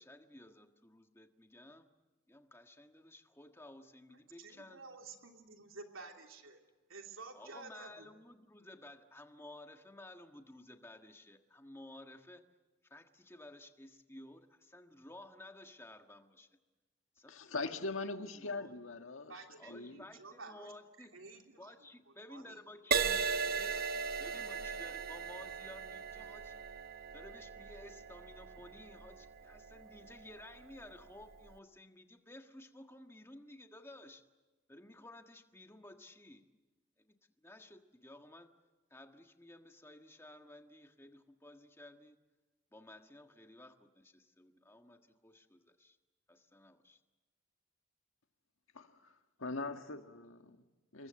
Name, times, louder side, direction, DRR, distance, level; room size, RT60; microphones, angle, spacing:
voice 1, 0.0-1.9 2.3-4.8 7.3-12.4 12.9-16.5 17.1-17.6 18.0-18.1 18.3-18.7 19.6-21.1 21.6-23.9 24.2-26.6 27.1-34.2 34.7-36.4 37.1-37.2 37.4-38.5 38.9-42.2 42.7-46.0 46.3-47.0, left 1 dB, 10° left, 1.5 m, -54 dB
voice 2, 4.4-6.6 6.9-8.1 19.3-20.7 21.1-21.7 22.3-22.6, right 3 dB, 85° right, 3.1 m, -51 dB
voice 3, 17.3-20.0 48.7-48.9 49.4-50.6 50.9-51.1, left 3 dB, 80° left, 1.7 m, -41 dB
Crash cymbal, 22.9-30.5 31.2-31.5, right 5 dB, 50° right, 0.8 m, -38 dB
27.5 x 23.0 x 7.7 m
head